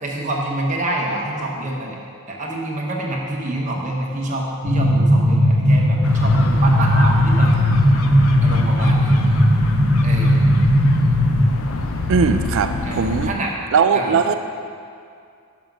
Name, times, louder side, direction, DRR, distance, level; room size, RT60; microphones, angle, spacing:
voice 1, 0.0-2.0 2.3-7.6 8.4-9.2 10.0-10.5 12.8-13.5 13.9-14.1, right 1 dB, 35° right, -2 dB, 1.0 m, -27 dB
sound 1, 4.6-11.4, equal, 80° right, 1.1 m, -16 dB
sound 2, 6.0-13.3, left 2 dB, 65° left, 0.5 m, -28 dB
voice 2, 12.1-13.3 13.7-14.3, right 5 dB, 60° right, 9 dB, 0.4 m, -18 dB
6.0 x 5.7 x 5.2 m, 2.3 s
head